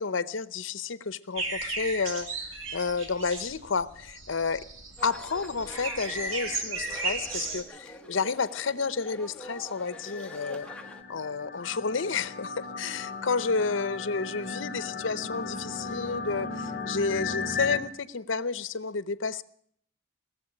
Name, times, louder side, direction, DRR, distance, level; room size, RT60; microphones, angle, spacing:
voice 1, 0.0-4.6 5.0-10.7 11.1-19.4, left 4 dB, 70° left, 16 dB, 0.7 m, -31 dB
sound 1, 1.4-7.6, right 3 dB, 80° right, 2.3 m, -35 dB
sound 2, 5.0-11.0, equal, 5° left, 1.0 m, -46 dB
sound 3, 9.9-17.8, left 4 dB, 45° left, 2.9 m, -36 dB
19.0 x 7.4 x 9.9 m, 0.63 s
head